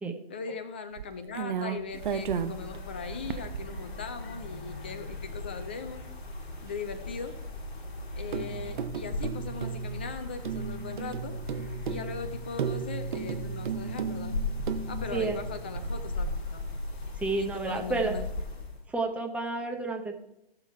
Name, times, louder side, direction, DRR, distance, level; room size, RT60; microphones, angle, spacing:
voice 1, 0.3-6.1 6.6-7.3 8.2-11.4 11.9-14.3 14.9-16.6 17.3-18.3, left 5 dB, 10° left, 10 dB, 0.3 m, -39 dB
sound 1, 1.0-4.1 4.7-4.8 5.0-5.1 8.3-16.1, right 7 dB, 50° right, 1.0 m, -35 dB
sound 2, 1.9-18.8, left 2 dB, 55° left, 2.8 m, -38 dB
voice 2, 17.2-18.2 18.9-20.1, right 3 dB, 5° right, 2 dB, 0.9 m, -30 dB
16.0 x 7.2 x 4.5 m, 0.83 s
figure-of-eight pair, 125°, 31 cm